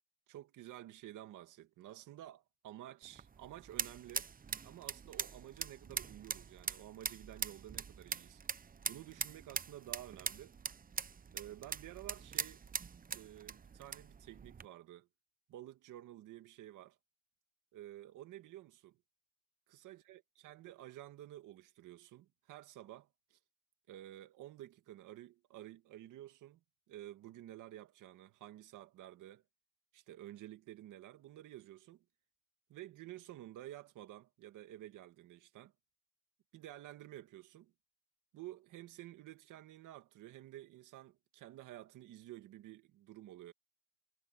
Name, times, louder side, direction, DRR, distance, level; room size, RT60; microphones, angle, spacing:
voice 1, 0.3-4.3 4.6-8.4 8.9-10.6 11.3-12.7 13.1-15.1 15.5-17.0 17.7-19.0 19.7-23.4 23.9-26.6 26.9-29.4 29.9-32.0 32.7-35.7 36.5-37.7 38.3-43.5, right 14 dB, 85° right, 2.0 m, -52 dB
sound 1, 3.0-14.7, right 6 dB, 30° right, 0.8 m, -43 dB
cardioid pair, 90°, 30 cm